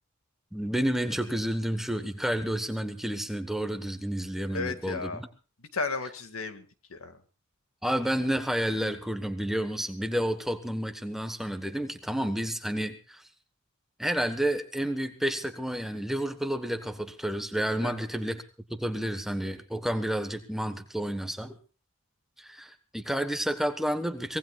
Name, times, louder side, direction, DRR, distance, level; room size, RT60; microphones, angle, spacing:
voice 1, 0.5-5.1 7.8-13.2 14.0-18.4 18.7-21.5 22.4-24.4, equal, ahead, 8 dB, 1.2 m, -30 dB
voice 2, 4.5-5.2 5.6-7.2 17.8-18.0, left 4 dB, 85° left, 8 dB, 2.0 m, -34 dB
24.0 x 19.0 x 2.4 m, 0.35 s
head